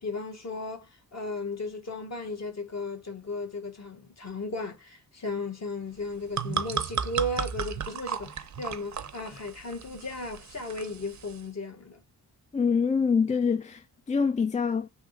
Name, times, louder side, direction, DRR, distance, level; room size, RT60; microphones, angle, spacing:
voice 1, 0.0-12.0, left 2 dB, 45° left, 1.3 m, -35 dB
sound 1, 6.0-11.5, right 7 dB, 50° right, 0.6 m, -35 dB
voice 2, 12.5-14.9, left 5 dB, 20° left, 0.3 m, -25 dB
3.5 x 2.8 x 2.4 m
cardioid pair, 65°, 37 cm